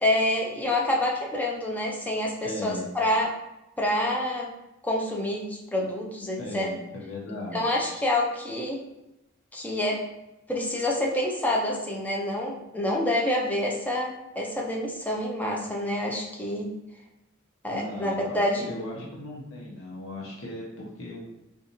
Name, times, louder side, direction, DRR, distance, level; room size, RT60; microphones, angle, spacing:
voice 1, 0.0-3.4 3.8-4.5 4.8-6.7 7.5-8.8 9.5-10.1 10.5-16.7 17.6-18.7, left 1 dB, 10° left, -2 dB, 0.5 m, -27 dB
voice 2, 2.4-2.8 6.4-7.6 17.7-18.4 18.6-21.2, left 2 dB, 80° left, -4 dB, 0.9 m, -37 dB
3.8 x 2.4 x 2.8 m, 0.91 s
head